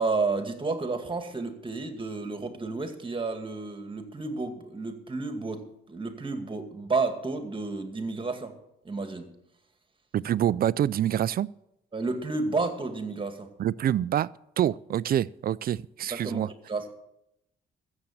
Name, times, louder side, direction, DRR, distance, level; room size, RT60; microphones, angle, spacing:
voice 1, 0.0-5.6 5.9-8.5 8.8-9.3 11.9-13.5 16.1-16.9, right 3 dB, 25° right, 2.1 m, -31 dB
voice 2, 10.1-11.5 13.6-14.3 14.6-16.5, right 11 dB, 50° right, 0.4 m, -26 dB
14.5 x 7.3 x 7.4 m
cardioid pair, 90°, 20 cm